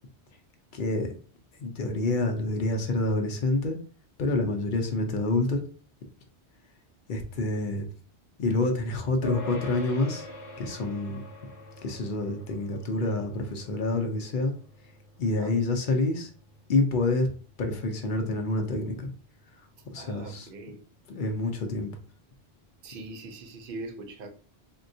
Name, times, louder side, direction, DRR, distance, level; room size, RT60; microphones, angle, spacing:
voice 1, 0.7-1.1 1.6-3.8 4.2-5.6 7.1-7.9 8.4-10.3 10.6-11.2 11.8-14.5 15.2-16.3 16.7-19.1 19.9-20.5 21.1-21.9, left 2 dB, 60° left, 0.6 m, -27 dB
sound 1, 9.2-18.9, left 1 dB, 20° left, 0.8 m, -45 dB
voice 2, 19.9-20.8 22.8-24.3, right 2 dB, 60° right, 0.7 m, -41 dB
3.6 x 2.2 x 2.6 m
omnidirectional pair, 1.1 m